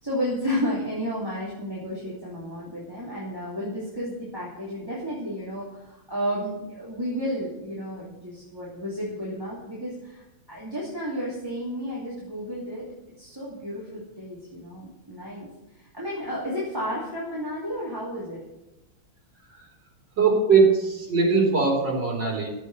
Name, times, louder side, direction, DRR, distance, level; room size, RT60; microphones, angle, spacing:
voice 1, 0.0-12.9 13.2-15.5 15.7-18.4, equal, 10° right, -8 dB, 3.0 m, -32 dB
voice 2, 20.2-22.5, right 4 dB, 55° right, -3 dB, 4.2 m, -21 dB
13.5 x 8.1 x 6.7 m, 0.94 s
omnidirectional pair, 2.4 m